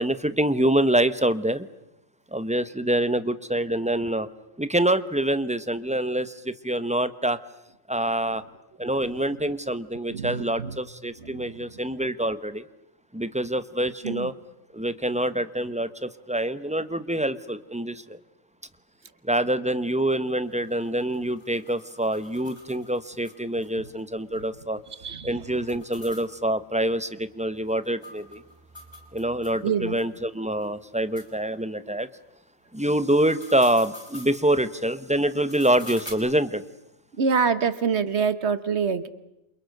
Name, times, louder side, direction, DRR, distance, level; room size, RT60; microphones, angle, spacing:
voice 1, 0.0-1.7 2.3-4.3 4.6-7.4 7.9-8.4 8.8-12.6 13.1-14.3 14.7-18.2 19.2-24.8 25.2-28.4 29.1-32.1 32.7-36.6, right 1 dB, 5° right, 13 dB, 0.9 m, -25 dB
voice 2, 10.1-10.8 11.2-11.7 14.0-14.3 25.0-25.4 29.6-30.0 37.2-39.1, right 6 dB, 65° right, 13 dB, 1.5 m, -26 dB
sound 1, 20.4-23.7 24.0-24.1 24.3-24.4 25.5-29.6 30.0-30.1 30.6-30.7 31.1-31.3 33.0-34.4 35.3-36.1, left 1 dB, 20° left, 4.5 m, -46 dB
28.5 x 28.0 x 6.7 m, 0.86 s
omnidirectional pair, 1.2 m